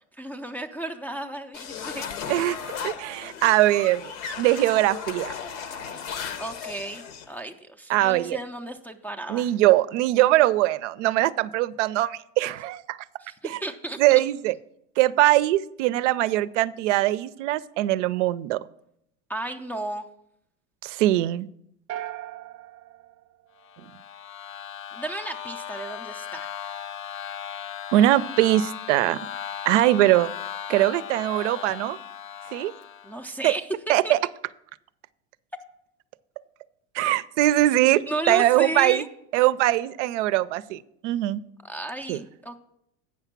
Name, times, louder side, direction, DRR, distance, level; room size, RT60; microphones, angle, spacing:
voice 1, 0.1-2.4 6.4-9.5 13.2-14.2 19.3-20.0 24.9-26.5 33.0-33.7 34.0-34.2 38.1-39.1 41.6-42.6, right 2 dB, 5° left, 1 dB, 0.3 m, -34 dB
sound 1, 1.5-7.3, left 7 dB, 80° left, 1.0 m, -36 dB
voice 2, 2.8-5.3 7.9-8.4 9.3-13.0 13.4-13.6 14.0-14.5 15.0-18.6 20.8-21.5 27.9-29.2 29.7-30.3 30.7-32.0 32.5-32.7 33.4-33.5 33.9-34.2 36.9-39.0 39.3-41.4 42.1-42.2, right 15 dB, 85° right, 17 dB, 0.5 m, -22 dB
sound 2, 21.9-24.2, right 13 dB, 45° right, 0.6 m, -39 dB
sound 3, 23.6-33.3, left 10 dB, 55° left, 0.5 m, -37 dB
8.7 x 5.8 x 5.8 m, 0.75 s
supercardioid pair, 125°, 35 cm